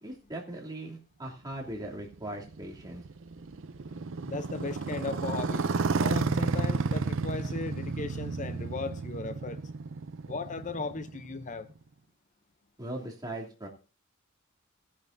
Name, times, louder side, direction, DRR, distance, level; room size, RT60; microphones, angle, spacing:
voice 1, 0.0-3.0 12.8-13.7, right 1 dB, 20° right, 2.9 m, -39 dB
Motorcycle, 1.7-11.7, right 4 dB, 60° right, 0.6 m, -32 dB
voice 2, 4.3-9.6 10.3-11.7, left 3 dB, 35° left, 0.7 m, -37 dB
17.5 x 10.5 x 2.7 m
head